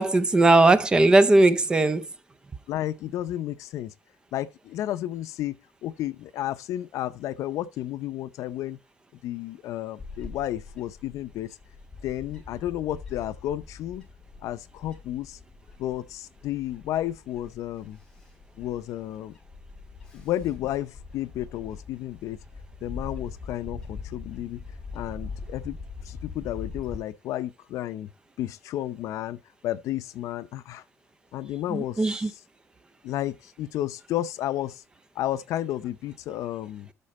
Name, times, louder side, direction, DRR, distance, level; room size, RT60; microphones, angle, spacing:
voice 1, 0.0-2.1 31.7-32.3, right 2 dB, 15° right, 0.5 m, -19 dB
voice 2, 2.7-3.9 4.3-8.8 9.2-11.5 12.0-14.1 14.4-15.4 15.8-18.0 18.6-19.4 20.1-22.4 22.8-24.6 24.9-25.8 26.0-28.1 28.4-30.8 31.3-32.4 33.0-34.8 35.1-36.9, left 13 dB, 75° left, 0.6 m, -32 dB
Bird / Wind, 10.0-27.0, left 4 dB, 15° left, 1.8 m, -42 dB
12.5 x 4.4 x 4.2 m
cardioid pair, 175°, 6 cm